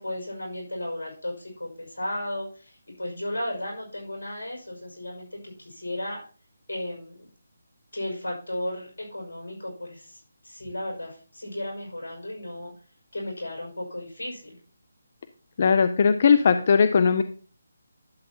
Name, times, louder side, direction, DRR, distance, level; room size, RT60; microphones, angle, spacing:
voice 1, 0.0-6.2 6.7-7.3 7.9-12.7 13.1-14.6, left 1 dB, 75° left, -1 dB, 5.7 m, -34 dB
voice 2, 15.6-17.2, left 5 dB, 45° left, 11 dB, 0.5 m, -19 dB
11.5 x 7.7 x 2.9 m, 0.39 s
figure-of-eight pair, 155°, 0 cm